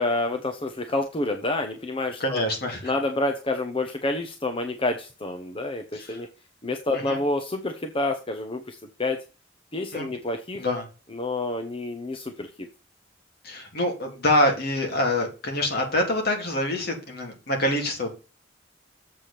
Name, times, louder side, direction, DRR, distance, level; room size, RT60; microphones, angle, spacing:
voice 1, 0.0-2.4 2.8-6.3 6.6-9.2 9.7-10.6 11.1-12.7, left 2 dB, 30° left, 5 dB, 0.9 m, -28 dB
voice 2, 2.2-2.8 5.9-6.2 6.9-7.2 9.9-10.1 10.6-10.8 13.4-18.1, left 1 dB, 55° left, 2 dB, 2.8 m, -25 dB
7.5 x 4.8 x 6.8 m, 0.32 s
head